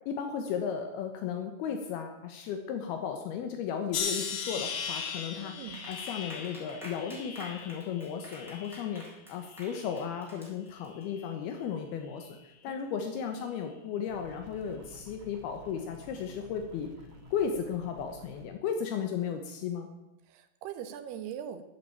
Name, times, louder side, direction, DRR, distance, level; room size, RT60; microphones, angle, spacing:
voice 1, 0.1-5.5 5.9-12.4 12.6-16.9 17.3-19.9, left 7 dB, 80° left, 5 dB, 3.0 m, -35 dB
sound 1, 3.9-9.1 9.5-10.2 10.9-11.2, left 6 dB, 55° left, 2.6 m, -38 dB
voice 2, 5.3-5.8 12.6-12.8 20.3-21.6, right 9 dB, 85° right, 9 dB, 3.2 m, -41 dB
Clapping, 5.7-11.0, equal, ahead, 4.1 m, -49 dB
sound 2, 14.1-18.5, left 1 dB, 55° right, 1.4 m, -51 dB
14.5 x 7.6 x 8.9 m, 0.91 s
omnidirectional pair, 4.6 m